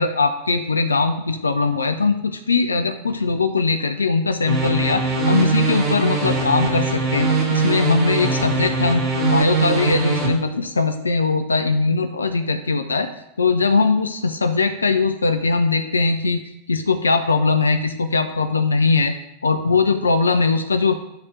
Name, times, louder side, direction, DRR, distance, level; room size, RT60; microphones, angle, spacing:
voice 1, 0.0-13.1 13.4-16.4 16.7-19.1 19.4-21.0, left 4 dB, 75° left, 8 dB, 0.5 m, -20 dB
sound 1, 4.4-10.3, right 4 dB, 30° right, 2.8 m, -21 dB
8.1 x 3.4 x 6.3 m, 0.85 s
figure-of-eight pair, 90°, 0 cm